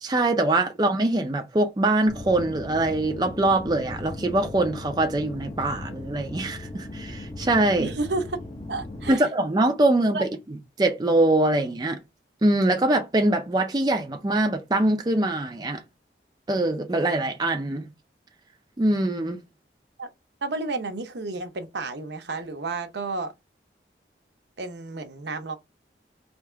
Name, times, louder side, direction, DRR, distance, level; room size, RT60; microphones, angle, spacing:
voice 1, 0.0-7.9 9.1-10.3 10.8-12.0 12.4-15.8 16.5-17.9 18.8-19.4, right 2 dB, 20° right, 0.4 m, -23 dB
sound 1, 2.1-9.1, left 2 dB, 25° left, 0.6 m, -38 dB
voice 2, 7.8-8.4 8.7-9.3 10.1-10.2 20.0-20.1 20.4-23.3 24.6-25.5, right 3 dB, 75° right, 0.7 m, -31 dB
3.4 x 2.8 x 4.4 m
head